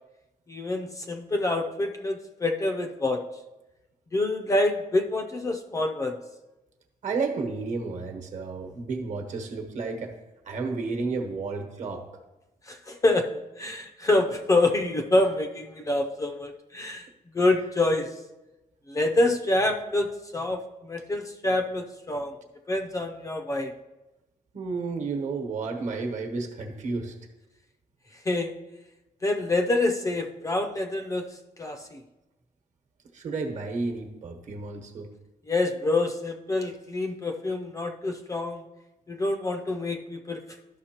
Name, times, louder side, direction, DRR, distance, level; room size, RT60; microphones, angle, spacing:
voice 1, 0.5-3.2 4.1-6.2 12.7-17.0 17.3-18.1 18.9-22.3 22.7-23.7 28.3-28.5 29.2-31.3 31.6-32.0 35.5-38.6 39.1-40.4, left 2 dB, 25° left, 5 dB, 0.5 m, -26 dB
voice 2, 7.0-10.1 10.5-12.0 24.5-27.1 33.1-35.1, right 4 dB, 55° right, 5 dB, 1.1 m, -31 dB
12.0 x 5.9 x 2.9 m, 1.0 s
cardioid pair, 145°, 14 cm